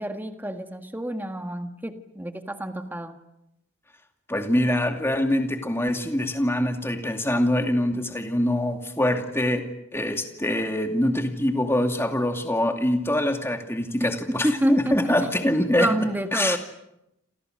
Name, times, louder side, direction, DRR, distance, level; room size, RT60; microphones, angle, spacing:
voice 1, 0.0-3.2 14.0-14.1 14.4-15.2 15.8-16.6, right 1 dB, 10° right, 7 dB, 1.7 m, -28 dB
voice 2, 4.3-9.6 9.9-15.9 16.3-16.6, left 1 dB, 10° left, 5 dB, 2.5 m, -24 dB
28.5 x 28.0 x 6.6 m, 0.85 s
head